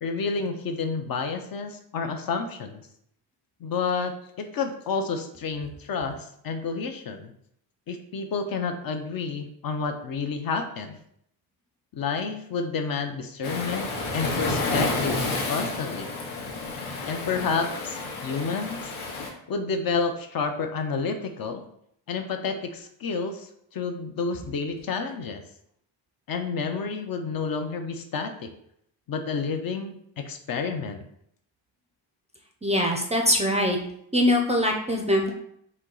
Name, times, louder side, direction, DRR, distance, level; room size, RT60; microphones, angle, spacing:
voice 1, 0.0-2.8 3.6-7.3 7.9-11.0 11.9-16.1 17.0-18.8 19.5-21.6 22.1-25.4 26.3-28.5 29.1-31.0, left 5 dB, 45° left, 6 dB, 0.6 m, -30 dB
Waves surf, 13.4-19.3, left 3 dB, 85° left, 1.1 m, -30 dB
voice 2, 32.6-33.8 34.1-35.3, left 1 dB, 15° right, 1 dB, 0.4 m, -22 dB
4.4 x 2.7 x 3.8 m, 0.71 s
cardioid pair, 125°, 48 cm